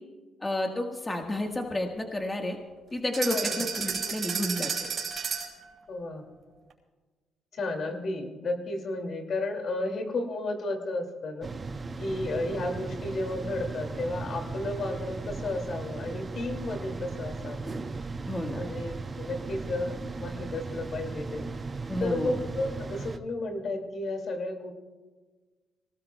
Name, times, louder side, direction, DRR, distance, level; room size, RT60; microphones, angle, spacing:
voice 1, 0.4-2.6 2.9-4.7 18.2-18.7 21.9-22.4, left 1 dB, 20° left, 2 dB, 1.5 m, -31 dB
sound 1, 3.1-5.6, right 6 dB, 50° right, 4.3 m, -31 dB
voice 2, 3.2-3.6 5.9-6.3 7.5-11.5 12.0-17.8 18.6-21.5 22.0-24.7, left 2 dB, 55° left, 4 dB, 2.4 m, -33 dB
sound 2, 11.4-23.2, right 3 dB, 30° right, 0.7 m, -37 dB
25.0 x 18.0 x 2.3 m, 1.4 s
cardioid pair, 90°, 0 cm